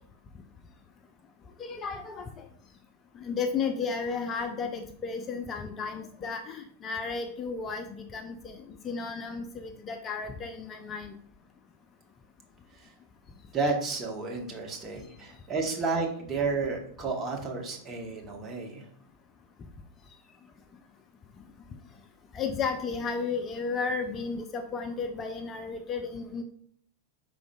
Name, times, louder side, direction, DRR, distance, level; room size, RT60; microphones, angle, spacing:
voice 1, 1.6-2.5 3.1-11.1 22.3-26.4, left 5 dB, 25° left, 6 dB, 0.4 m, -33 dB
voice 2, 13.5-18.9, right 4 dB, 25° right, 1 dB, 0.9 m, -31 dB
5.0 x 3.7 x 2.3 m, 0.63 s
figure-of-eight pair, 90°, 0 cm